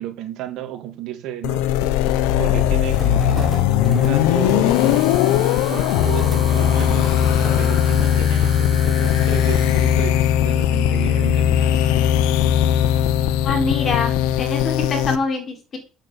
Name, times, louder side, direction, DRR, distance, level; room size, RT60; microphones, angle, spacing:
voice 1, 0.0-1.9 2.4-5.4 5.7-12.2, right 11 dB, 70° right, 2.6 m, -33 dB
sound 1, 1.4-15.2, left 10 dB, 85° left, 0.9 m, -18 dB
sound 2, 2.9-9.2, right 2 dB, 10° right, 3.5 m, -35 dB
sound 3, 4.6-10.1, right 4 dB, 25° right, 2.6 m, -38 dB
voice 2, 13.4-15.8, left 4 dB, 40° left, 4.3 m, -24 dB
9.0 x 7.3 x 7.2 m
supercardioid pair, 100°, 0 cm